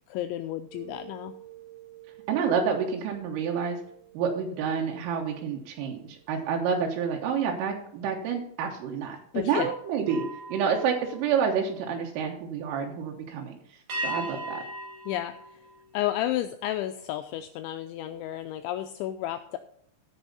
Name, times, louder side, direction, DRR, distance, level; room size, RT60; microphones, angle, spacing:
voice 1, 0.1-1.3 9.3-9.7 15.1-15.6 15.9-19.6, left 13 dB, 85° left, 8 dB, 2.6 m, -32 dB
sound 1, 0.7-6.3 6.7-7.0 10.0-12.2 13.9-16.5, right 2 dB, 60° right, 1.9 m, -41 dB
voice 2, 2.3-3.8 4.2-13.6 14.0-14.6, right 6 dB, 85° right, 1 dB, 3.7 m, -28 dB
16.5 x 5.5 x 4.0 m, 0.69 s
omnidirectional pair, 5.7 m